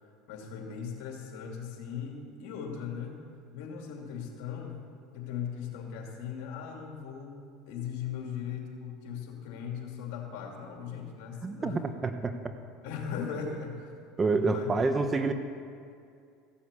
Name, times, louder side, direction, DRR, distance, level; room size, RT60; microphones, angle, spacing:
voice 1, 0.3-3.2 3.5-4.8 5.1-11.8 12.8-13.9 14.3-14.7, left 7 dB, 65° left, 1 dB, 2.7 m, -38 dB
voice 2, 11.4-12.3 14.2-15.3, right 3 dB, 25° right, 8 dB, 1.0 m, -28 dB
15.0 x 7.2 x 8.3 m, 2.3 s
hypercardioid pair, 90°, 0 cm